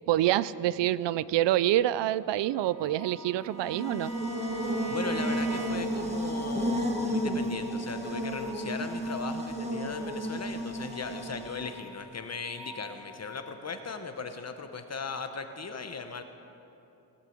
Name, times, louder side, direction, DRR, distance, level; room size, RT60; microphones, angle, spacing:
voice 1, 0.1-4.1, right 13 dB, 85° right, 18 dB, 0.5 m, -26 dB
Bowed string instrument, 2.3-6.1, right 5 dB, 35° right, 0.7 m, -41 dB
sound 1, 2.7-13.5, left 2 dB, 65° left, 2.2 m, -49 dB
Buzz, 3.6-11.7, equal, 15° right, 1.7 m, -32 dB
voice 2, 4.9-16.2, left 4 dB, 40° left, 7 dB, 1.0 m, -38 dB
18.5 x 8.3 x 7.9 m, 2.8 s
cardioid pair, 115°, 41 cm